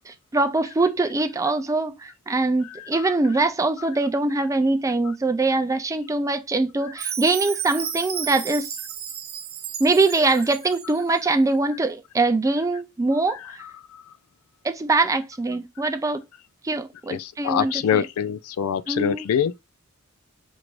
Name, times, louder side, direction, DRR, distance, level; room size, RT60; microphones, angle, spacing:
voice 1, 0.1-8.7 9.8-13.6 14.6-16.2 16.6-18.0 18.9-19.3, right 3 dB, 15° right, 0.4 m, -23 dB
voice 2, 2.7-3.1 13.3-14.0 17.1-19.6, left 8 dB, 75° left, 0.3 m, -26 dB
Chime, 7.0-11.1, right 8 dB, 45° right, 0.9 m, -33 dB
4.6 x 2.5 x 3.1 m
head